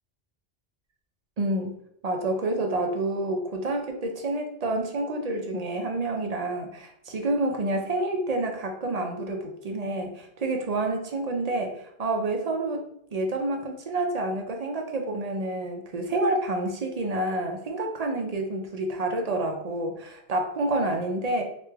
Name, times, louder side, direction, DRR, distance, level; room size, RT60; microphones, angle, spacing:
voice 1, 1.4-1.7 2.0-12.8 13.1-21.4, right 2 dB, 50° right, 3 dB, 0.6 m, -28 dB
3.1 x 2.5 x 3.4 m, 0.72 s
omnidirectional pair, 1.0 m